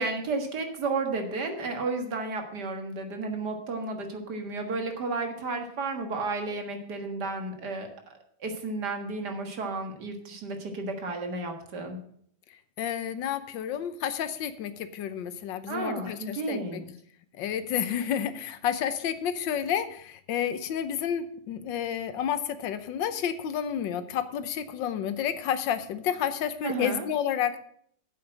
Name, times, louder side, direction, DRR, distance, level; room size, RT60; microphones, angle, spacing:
voice 1, 0.0-12.0 15.7-16.9 26.6-27.1, right 3 dB, 60° right, 5 dB, 2.1 m, -32 dB
voice 2, 12.8-16.8 17.3-27.6, left 9 dB, 75° left, 11 dB, 1.5 m, -30 dB
8.7 x 7.8 x 7.6 m, 0.64 s
omnidirectional pair, 2.1 m